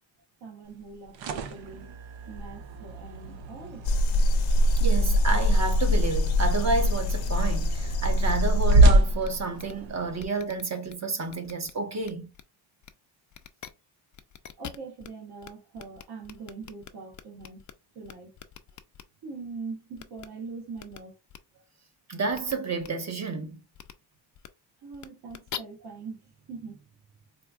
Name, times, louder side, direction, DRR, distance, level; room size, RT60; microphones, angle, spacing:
voice 1, 0.4-1.9 2.3-3.8 14.6-17.6 17.9-18.4 19.2-21.1 24.8-26.9, right 4 dB, 60° right, 1.2 m, -42 dB
sound 1, 0.9-10.2, right 1 dB, 80° right, 0.7 m, -27 dB
sound 2, 3.8-8.9, left 1 dB, 75° left, 0.7 m, -23 dB
voice 2, 4.8-12.3 22.1-23.6, right 3 dB, 35° right, 0.8 m, -30 dB
sound 3, 8.8-8.9 9.2-9.3 9.6-9.7 10.2-10.9 11.3-11.7 12.0-12.4 12.8-12.9 13.3-13.7 14.1-15.1 15.4-15.5 15.8-17.7 18.0-19.0 20.0-20.3 20.8-21.0 21.3-21.4 22.3-22.5 22.8-22.9 23.7-23.9 24.3-24.5 24.9-25.6, left 10 dB, 45° left, 0.4 m, -43 dB
4.2 x 2.5 x 2.3 m
cardioid pair, 120°, 45 cm